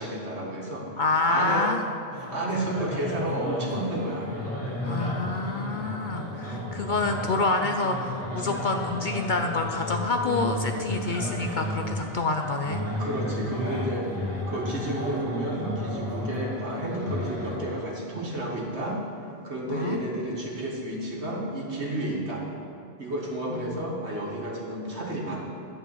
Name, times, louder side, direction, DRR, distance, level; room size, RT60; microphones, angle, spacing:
voice 1, 0.0-0.9 1.2-1.7 2.2-4.3 6.5-6.7 13.0-19.0 19.4-22.4 23.0-25.5, right 1 dB, 65° right, -2 dB, 2.1 m, -31 dB
voice 2, 1.0-1.8 4.8-12.8 19.7-20.0 23.5-23.8, left 3 dB, 50° left, 4 dB, 0.7 m, -27 dB
sound 1, 2.1-17.6, left 1 dB, 10° left, 2.5 m, -33 dB
sound 2, 4.7-16.8, right 3 dB, 20° right, 1.6 m, -52 dB
12.0 x 5.5 x 8.4 m, 2.5 s
omnidirectional pair, 1.2 m